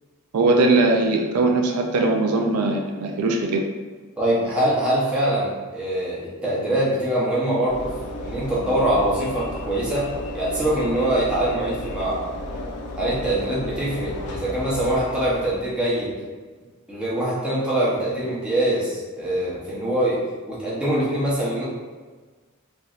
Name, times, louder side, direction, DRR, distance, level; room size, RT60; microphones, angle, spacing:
voice 1, 0.3-3.6, right 2 dB, 85° right, 2 dB, 0.4 m, -20 dB
voice 2, 4.2-7.9 8.2-10.1 10.3-12.2 13.0-16.1 16.9-20.2 20.5-21.6, right 1 dB, 5° right, -9 dB, 0.7 m, -23 dB
Train / Engine / Alarm, 7.6-15.9, left 1 dB, 90° left, 0.4 m, -34 dB
3.1 x 2.6 x 2.4 m, 1.4 s
head